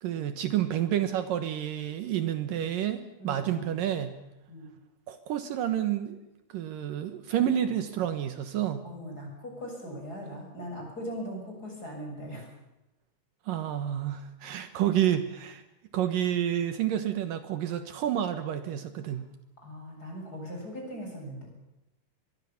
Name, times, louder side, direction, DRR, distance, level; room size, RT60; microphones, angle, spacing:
voice 1, 0.0-4.2 5.1-6.2 6.5-8.8 13.5-15.6 15.9-19.3, right 11 dB, 70° right, 9 dB, 2.8 m, -29 dB
voice 2, 3.2-3.8 4.5-4.7 8.8-12.5 19.1-19.2 19.6-21.5, equal, 25° left, 1 dB, 7.8 m, -40 dB
24.0 x 22.0 x 7.1 m, 0.91 s
omnidirectional pair, 4.2 m